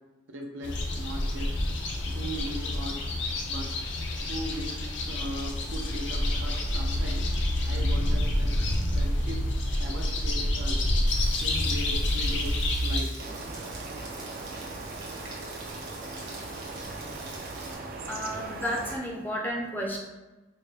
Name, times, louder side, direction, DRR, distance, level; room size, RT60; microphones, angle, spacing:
voice 1, 0.3-1.5 2.1-3.1 3.4-3.6 4.3-4.7 5.1-7.2 7.7-8.6 8.9-9.4 9.8-10.8 11.4-12.5 12.8-13.1, right 1 dB, 85° right, 0 dB, 0.7 m, -38 dB
sound 1, 0.6-13.0, left 1 dB, 75° left, 0.6 m, -28 dB
Rain, 11.1-17.7, right 3 dB, 65° right, 1.2 m, -44 dB
sound 2, 13.2-19.0, right 2 dB, 50° right, 0.4 m, -39 dB
voice 2, 17.5-20.0, equal, 10° left, -2 dB, 0.5 m, -33 dB
4.6 x 2.1 x 3.3 m, 1.1 s
head